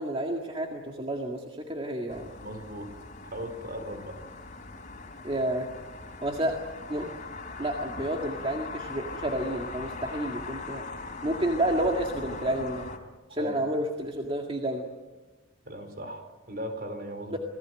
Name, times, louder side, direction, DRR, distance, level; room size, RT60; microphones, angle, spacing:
voice 1, 0.0-2.3 5.2-5.7 6.2-6.5 6.9-7.1 7.6-10.8 11.2-12.9 13.3-14.9 17.3-17.4, right 1 dB, 25° right, 1 dB, 2.0 m, -30 dB
sound 1, 2.1-13.0, left 3 dB, 35° left, 3.3 m, -40 dB
voice 2, 2.4-2.9 3.2-4.2 13.3-13.6 15.6-17.3, equal, 45° right, 7 dB, 4.5 m, -38 dB
27.5 x 18.5 x 9.0 m, 1.2 s
head